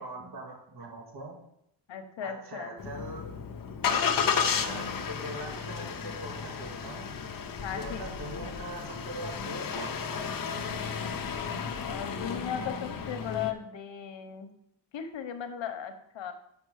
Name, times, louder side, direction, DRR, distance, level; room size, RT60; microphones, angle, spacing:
voice 1, 0.0-1.3 2.2-3.3 4.1-7.1 7.7-10.4, right 1 dB, 55° right, 0 dB, 2.3 m, -42 dB
voice 2, 1.9-2.8 7.5-8.6 11.9-14.5 14.9-16.3, left 8 dB, 75° left, 8 dB, 1.1 m, -37 dB
Engine starting, 2.8-13.5, left 6 dB, 50° left, 0.8 m, -33 dB
6.2 x 5.7 x 6.4 m, 0.76 s
wide cardioid pair, 125°, 45 cm